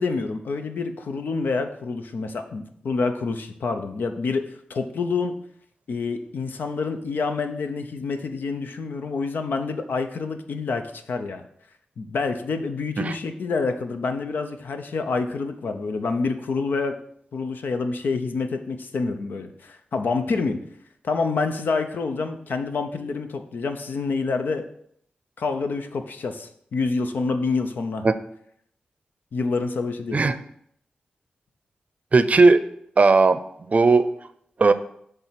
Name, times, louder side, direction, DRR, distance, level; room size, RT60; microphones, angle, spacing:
voice 1, 0.0-5.4 5.9-11.4 12.0-16.9 17.3-20.6 21.0-24.7 25.4-28.0 29.3-30.2, left 4 dB, 80° left, 7 dB, 0.7 m, -27 dB
voice 2, 32.1-32.6 33.0-33.4 33.7-34.1 34.6-34.7, right 3 dB, 45° right, 12 dB, 0.5 m, -16 dB
7.3 x 3.4 x 5.7 m, 0.69 s
cardioid pair, 65°, 3 cm